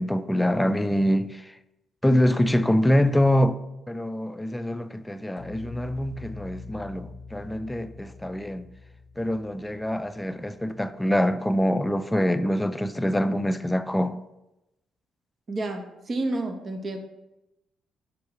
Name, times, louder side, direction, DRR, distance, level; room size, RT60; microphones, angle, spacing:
voice 1, 0.0-1.5 2.0-8.7 9.2-14.2, equal, 10° left, 0.3 m, -25 dB
sound 1, 5.4-10.6, left 4 dB, 50° left, 0.7 m, -44 dB
voice 2, 15.5-17.0, right 2 dB, 40° right, 0.8 m, -30 dB
5.3 x 4.7 x 4.7 m
cardioid pair, 90°, 0 cm